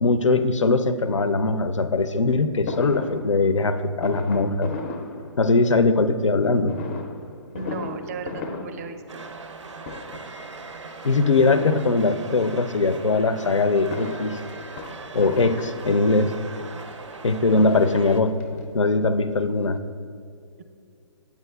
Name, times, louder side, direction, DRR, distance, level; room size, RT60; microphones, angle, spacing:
voice 1, 0.0-4.7 5.4-6.7 11.0-14.4 15.1-16.3 17.2-18.3 18.7-19.8, left 3 dB, 85° left, 11 dB, 0.4 m, -21 dB
Fireworks, 2.7-5.9 6.6-9.6 9.8-10.4 11.4-12.5 13.6-16.3 17.1-17.2 17.4-17.5 17.9-19.1 19.4-19.5 19.7-19.8, left 3 dB, 25° left, 0.4 m, -36 dB
voice 2, 7.5-9.3 20.6-20.7, right 4 dB, 30° right, 8 dB, 0.4 m, -35 dB
sound 1, 9.1-18.2, right 4 dB, 80° right, 0.5 m, -40 dB
8.8 x 8.1 x 2.2 m, 2.3 s
figure-of-eight pair, 135°, 15 cm